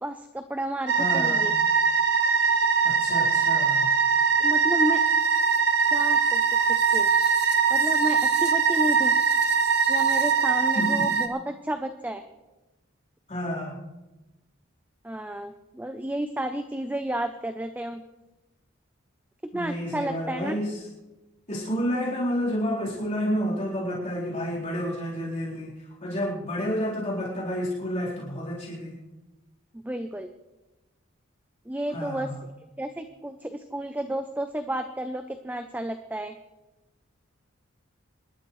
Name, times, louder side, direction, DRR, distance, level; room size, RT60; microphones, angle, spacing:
voice 1, 0.0-1.5 4.4-5.0 5.9-6.4 6.9-7.1 7.7-9.2 9.9-12.2 15.0-18.0 19.5-20.6 29.8-30.3 31.7-32.3 32.8-36.3, right 1 dB, 10° right, 7 dB, 0.6 m, -31 dB
sound 1, 0.9-11.3, right 5 dB, 55° right, 1.2 m, -22 dB
voice 2, 1.0-1.4 2.8-3.9 10.7-11.1 13.3-13.8 19.5-20.8 21.5-25.7 26.0-29.0 31.9-32.4, equal, 40° left, -8 dB, 4.1 m, -30 dB
26.5 x 12.0 x 3.2 m, 1.0 s
head